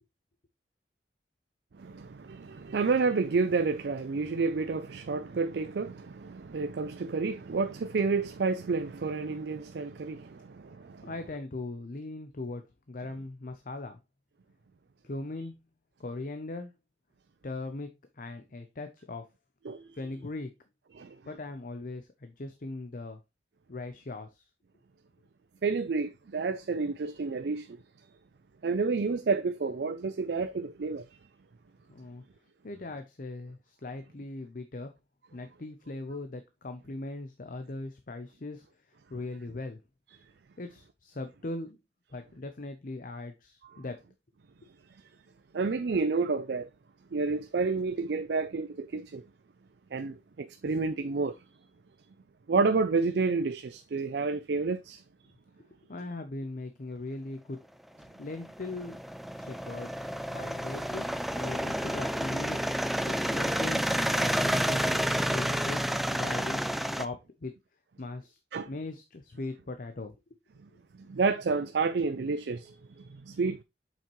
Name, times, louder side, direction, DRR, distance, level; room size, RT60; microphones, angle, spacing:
voice 1, 1.8-11.1 19.7-19.9 21.0-21.2 25.6-27.8 28.6-31.1 45.5-46.7 47.1-49.2 49.9-51.4 52.5-55.0 68.5-68.7 70.9-73.6, right 4 dB, 65° right, 0.4 m, -30 dB
voice 2, 11.0-14.0 15.0-15.6 16.0-16.7 17.4-17.9 18.1-19.3 19.9-20.5 21.3-23.2 23.7-24.5 31.9-32.2 32.6-34.9 35.3-39.8 40.6-41.8 42.1-44.0 55.9-57.6 58.2-59.0 59.3-61.1 61.4-66.6 67.0-67.5 68.0-68.4 68.6-70.2 70.7-70.8, left 2 dB, 50° left, 0.7 m, -40 dB
sound 1, 58.0-67.1, equal, ahead, 0.3 m, -30 dB
7.3 x 5.6 x 3.1 m
head